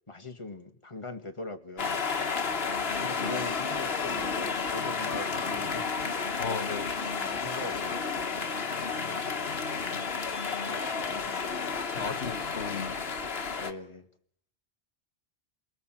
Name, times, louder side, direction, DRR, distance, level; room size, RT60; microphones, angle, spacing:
voice 1, 0.1-2.0 2.8-6.4 7.1-8.4 8.9-9.5 10.7-11.7 11.9-12.2 13.6-14.1, left 3 dB, 30° left, 6 dB, 2.0 m, -42 dB
sound 1, 1.8-13.7, left 5 dB, 70° left, 1.6 m, -32 dB
voice 2, 6.4-6.9 11.9-13.0, left 5 dB, 85° left, 11 dB, 1.6 m, -35 dB
28.0 x 19.0 x 7.7 m, 0.67 s
omnidirectional pair, 1.1 m